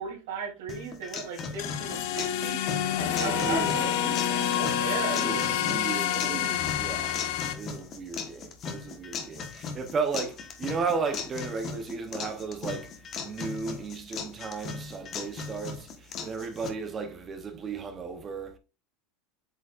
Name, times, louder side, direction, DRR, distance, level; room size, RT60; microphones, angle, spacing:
voice 1, 0.0-2.6 3.0-5.8 6.1-6.7, right 5 dB, 80° right, 2.9 m, -37 dB
sound 1, 0.7-16.7, left 5 dB, 25° left, 1.2 m, -38 dB
sound 2, 1.6-7.5, left 10 dB, 55° left, 0.8 m, -28 dB
voice 2, 3.1-4.0 5.1-7.2 7.6-13.0 13.2-18.6, right 4 dB, 20° right, 0.8 m, -34 dB
7.9 x 5.1 x 2.4 m
supercardioid pair, 170°, 0 cm